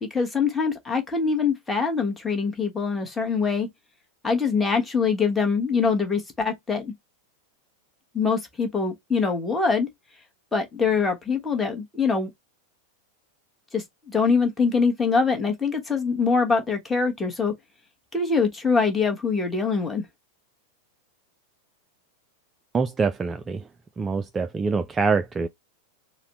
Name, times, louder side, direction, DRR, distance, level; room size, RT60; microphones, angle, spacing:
voice 1, 0.0-3.7 4.2-6.9 8.1-9.9 10.5-12.3 13.7-17.5 18.1-20.0, left 5 dB, 10° left, 1.2 m, -24 dB
voice 2, 22.7-23.7 24.0-25.5, right 4 dB, 15° right, 0.3 m, -25 dB
4.1 x 2.1 x 3.9 m
figure-of-eight pair, 90°, 0 cm